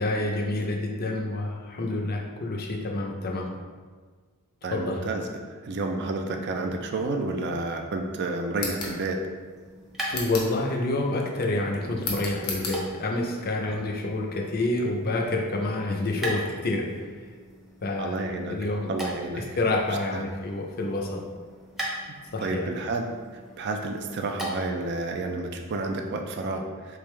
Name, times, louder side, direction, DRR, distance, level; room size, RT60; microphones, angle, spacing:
voice 1, 0.0-3.5 4.7-5.0 10.1-17.1 17.8-18.2 18.5-18.9 19.4-21.2 22.3-22.7, left 2 dB, 45° left, 1 dB, 0.5 m, -28 dB
voice 2, 4.6-9.2 13.6-13.8 18.0-19.6 20.1-20.3 22.4-27.0, right 2 dB, 50° right, 4 dB, 0.4 m, -31 dB
sound 1, 8.5-9.0 10.1-10.6 12.0-12.8, left 3 dB, 80° left, 0.9 m, -33 dB
sound 2, 9.3-24.9, equal, ahead, 0.6 m, -41 dB
3.8 x 3.4 x 3.2 m, 1.5 s
head